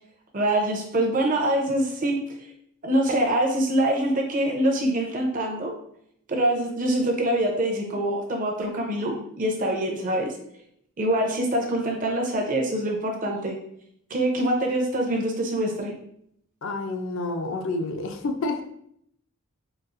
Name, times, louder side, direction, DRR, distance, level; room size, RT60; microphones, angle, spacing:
voice 1, 0.3-2.2 2.8-5.7 6.3-10.3 11.0-13.6 14.1-15.9, right 1 dB, 35° right, 1 dB, 0.5 m, -24 dB
voice 2, 16.6-18.6, left 2 dB, 60° left, 5 dB, 0.4 m, -29 dB
4.0 x 2.3 x 2.4 m, 0.70 s
head